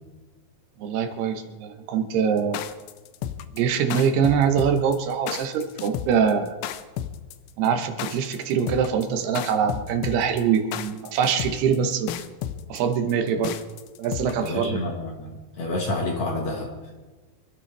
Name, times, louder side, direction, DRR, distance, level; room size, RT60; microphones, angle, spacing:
voice 1, 0.8-2.6 3.5-6.6 7.6-12.1 12.7-13.6 14.0-14.8, right 7 dB, 80° right, 7 dB, 3.0 m, -23 dB
sound 1, 2.4-14.6, left 11 dB, 90° left, 2.8 m, -33 dB
voice 2, 14.4-16.7, left 2 dB, 55° left, 0 dB, 2.3 m, -29 dB
25.5 x 12.5 x 3.3 m, 1.2 s
omnidirectional pair, 4.7 m